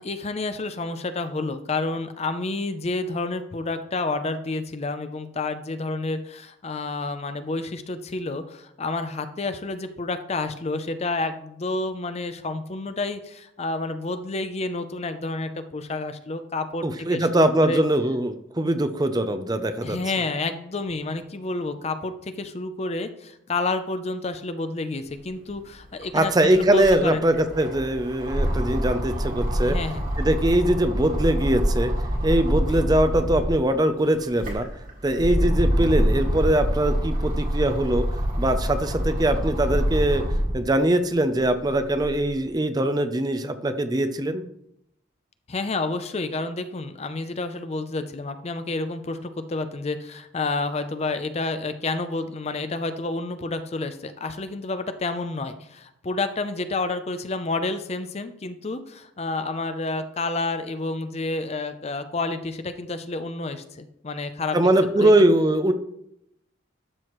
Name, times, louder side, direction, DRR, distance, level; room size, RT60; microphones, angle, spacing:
voice 1, 0.0-17.8 19.8-27.2 29.6-30.0 45.5-64.6 65.0-65.1, left 3 dB, 35° left, 10 dB, 0.5 m, -29 dB
voice 2, 16.8-20.0 26.1-29.8 30.2-31.9 32.2-34.7 35.0-38.1 38.4-40.2 40.5-44.4 64.5-65.7, right 1 dB, 20° right, 9 dB, 0.5 m, -22 dB
sound 1, 25.5-25.6 25.8-33.6 34.1-40.7 41.2-42.3, equal, 45° right, 1.9 m, -26 dB
12.0 x 6.2 x 3.1 m, 0.75 s
head